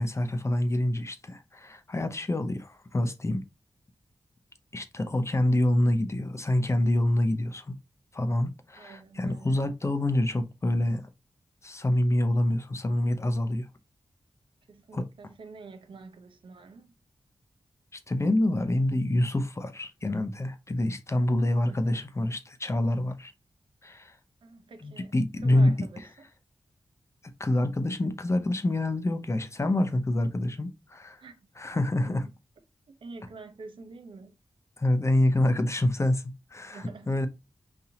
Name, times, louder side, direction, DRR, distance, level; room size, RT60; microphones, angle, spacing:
voice 1, 0.0-3.4 4.7-7.8 8.1-11.1 11.6-13.7 14.9-15.1 17.9-23.3 23.8-24.2 24.8-25.7 27.2-31.2 31.6-32.2 34.8-37.3, left 1 dB, 30° left, 0.6 m, -26 dB
voice 2, 8.8-9.7 14.7-17.0 21.7-22.0 24.4-26.3 31.2-31.4 31.6-31.7 32.1-32.2 32.9-34.4 36.7-37.3, right 4 dB, 75° right, 0.7 m, -47 dB
4.1 x 2.7 x 2.8 m
cardioid pair, 50°, 9 cm